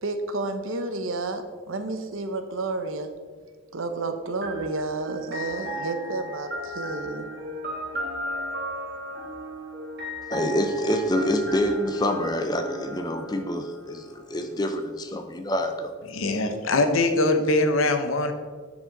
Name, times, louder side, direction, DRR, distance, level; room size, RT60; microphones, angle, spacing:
voice 1, 0.0-3.1 3.7-7.3, right 3 dB, 80° right, 8 dB, 0.8 m, -31 dB
sound 1, 4.4-14.2, equal, 55° right, 1.7 m, -35 dB
voice 2, 10.3-15.9, left 1 dB, 20° left, 6 dB, 0.6 m, -26 dB
voice 3, 16.1-18.3, left 2 dB, 90° left, 7 dB, 0.8 m, -22 dB
9.5 x 5.0 x 3.9 m, 1.5 s
head